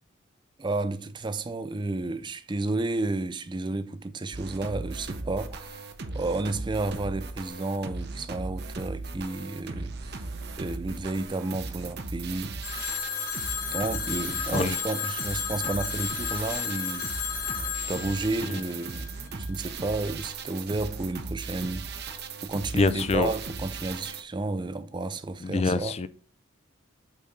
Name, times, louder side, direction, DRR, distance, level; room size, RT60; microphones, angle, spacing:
voice 1, 0.6-5.9 6.1-10.3 10.6-12.6 13.7-17.3 17.9-25.9, right 2 dB, 25° right, 0.5 m, -32 dB
sound 1, 4.3-24.2, right 4 dB, 55° right, 0.8 m, -37 dB
Telephone, 12.6-19.4, left 8 dB, 50° left, 1.1 m, -33 dB
voice 2, 22.8-23.3 25.4-26.1, left 3 dB, 30° left, 0.4 m, -25 dB
8.5 x 4.2 x 3.7 m
head